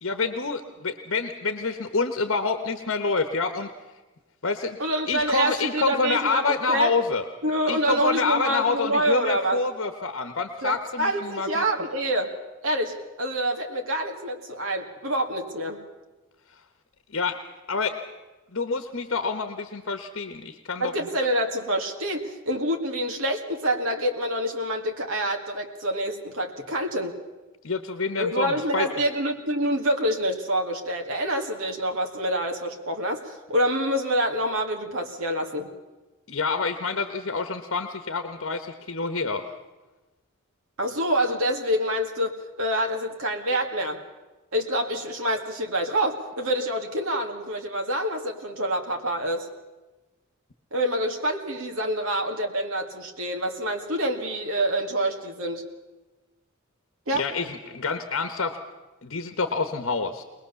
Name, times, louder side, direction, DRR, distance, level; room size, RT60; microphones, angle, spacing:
voice 1, 0.0-3.7 4.4-4.8 5.1-7.2 7.7-11.6 17.1-17.4 17.7-18.0 18.5-20.9 27.6-28.9 36.3-39.5 57.1-58.6 59.0-60.2, left 4 dB, 65° left, 8 dB, 1.2 m, -27 dB
voice 2, 4.8-6.9 7.4-9.6 10.6-12.3 12.6-15.8 20.8-27.2 28.2-35.7 40.8-44.0 44.5-49.5 50.7-55.7 57.1-57.3, right 1 dB, 90° right, 2 dB, 2.2 m, -27 dB
23.0 x 20.0 x 7.0 m, 1.2 s
head